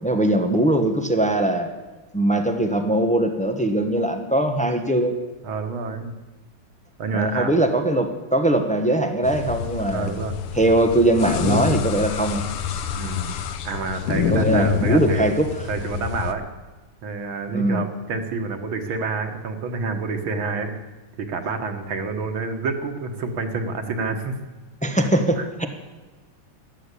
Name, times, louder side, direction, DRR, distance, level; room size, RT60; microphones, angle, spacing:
voice 1, 0.0-1.7 2.1-5.1 7.1-10.2 10.5-12.4 14.1-15.5 17.5-17.9 24.8-25.7, right 1 dB, 10° left, 6 dB, 0.4 m, -21 dB
voice 2, 5.4-6.1 7.0-7.5 9.8-10.4 12.9-13.3 13.6-16.4 17.0-20.7 21.2-24.4 25.4-25.5, right 4 dB, 65° right, 6 dB, 2.2 m, -28 dB
sound 1, 9.2-16.3, left 7 dB, 85° left, 1.9 m, -27 dB
13.0 x 12.5 x 8.3 m, 1.2 s
omnidirectional pair, 2.4 m